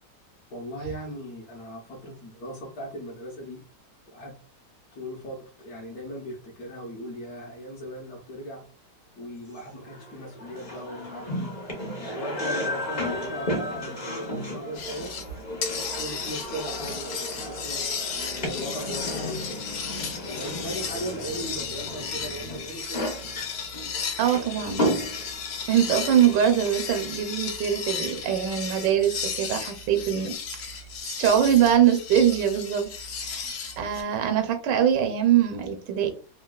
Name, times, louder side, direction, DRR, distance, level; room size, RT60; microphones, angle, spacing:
voice 1, 0.5-3.6 4.1-4.3 4.9-8.6 9.2-11.5 12.0-15.1 15.5-19.6 20.2-23.1 24.2-24.9, right 1 dB, 65° left, -1 dB, 1.1 m, -38 dB
sound 1, 9.6-27.2, equal, 45° left, 0.6 m, -34 dB
sound 2, 14.7-15.3 15.6-34.0, left 5 dB, 80° left, 1.4 m, -34 dB
voice 2, 24.2-24.8 25.7-30.3 31.0-32.9 33.2-36.1, right 9 dB, 85° right, 6 dB, 1.3 m, -23 dB
3.3 x 2.2 x 2.2 m, 0.38 s
omnidirectional pair, 1.9 m